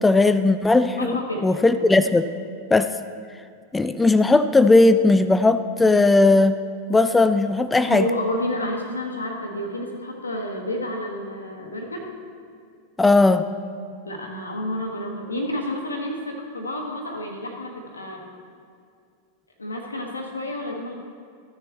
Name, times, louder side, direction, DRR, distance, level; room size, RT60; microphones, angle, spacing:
voice 1, 0.0-2.3 2.7-2.9 3.7-6.6 6.9-8.1 13.0-13.4, left 2 dB, 10° left, 12 dB, 0.3 m, -17 dB
voice 2, 0.9-1.5 7.5-12.1 14.0-18.2 19.6-20.9, left 1 dB, 80° left, 2 dB, 1.3 m, -30 dB
14.5 x 6.8 x 3.0 m, 2.3 s
figure-of-eight pair, 90°, 0 cm